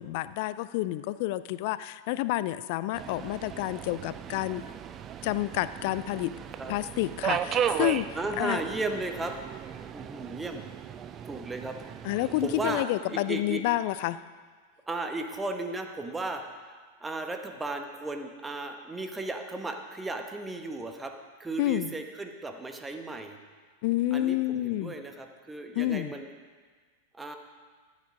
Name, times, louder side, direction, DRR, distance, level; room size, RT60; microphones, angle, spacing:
voice 1, 0.0-4.6 5.2-6.3 6.7-8.1 8.4-8.6 12.0-14.2 21.6-21.9 23.8-24.9 25.7-26.1, left 16 dB, 50° left, 16 dB, 0.4 m, -29 dB
Subway metro underground, 2.9-12.8, right 9 dB, 30° right, 0.5 m, -36 dB
voice 2, 8.1-9.4 9.9-10.6 11.3-11.8 12.4-13.6 14.9-21.1 21.4-23.4 24.1-26.3 27.1-27.4, right 2 dB, 10° right, 5 dB, 1.2 m, -35 dB
14.0 x 9.8 x 5.0 m, 1.5 s
figure-of-eight pair, 90°, 0 cm